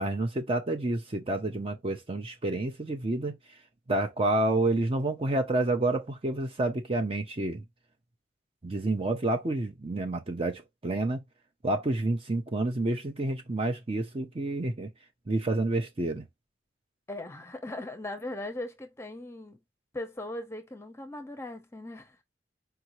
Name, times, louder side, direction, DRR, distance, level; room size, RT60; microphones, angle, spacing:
voice 1, 0.0-3.4 3.9-7.6 8.6-11.2 11.6-14.9 15.3-16.2, right 2 dB, 30° right, 0.6 m, -29 dB
voice 2, 17.1-19.6 19.9-22.2, left 1 dB, 15° left, 0.7 m, -39 dB
4.7 x 2.7 x 3.0 m
head